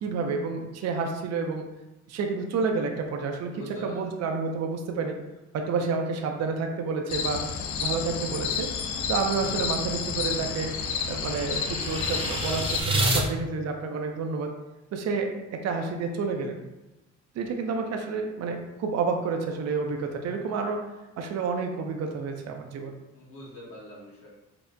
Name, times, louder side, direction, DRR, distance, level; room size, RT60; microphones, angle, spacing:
voice 1, 0.0-1.7 2.1-5.2 5.5-7.4 7.8-8.7 9.1-10.7 11.1-14.5 14.9-16.6 17.3-20.9 21.2-22.9, right 4 dB, 60° right, 3 dB, 0.5 m, -29 dB
voice 2, 3.5-4.2 23.1-24.3, left 1 dB, 45° left, -5 dB, 1.3 m, -44 dB
sound 1, 7.1-12.8, left 6 dB, 80° left, 0.4 m, -30 dB
sound 2, 9.7-13.2, right 1 dB, 20° right, 0.6 m, -30 dB
4.3 x 2.1 x 2.6 m, 1.0 s
cardioid pair, 90°, 30 cm